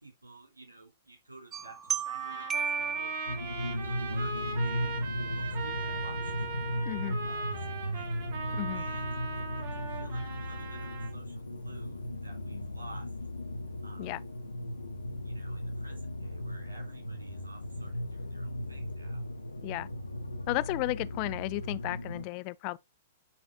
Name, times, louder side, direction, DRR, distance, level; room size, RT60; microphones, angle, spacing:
voice 1, 0.0-3.1 3.7-4.3 4.6-5.0 5.3-6.5 7.2-8.2 8.7-9.1 9.4-13.1 13.8-14.3 15.1-19.3, right 2 dB, 85° right, 3.5 m, -53 dB
sound 1, 1.5-3.9, right 6 dB, 20° right, 0.8 m, -34 dB
Trumpet, 2.1-11.1, right 4 dB, 50° right, 2.5 m, -39 dB
sound 2, 3.3-22.2, left 1 dB, 85° left, 0.9 m, -36 dB
voice 2, 6.9-7.2 8.5-8.8 14.0-14.2 19.6-19.9 20.5-22.8, left 22 dB, 40° left, 0.3 m, -33 dB
9.8 x 4.2 x 2.6 m
figure-of-eight pair, 105°, 0 cm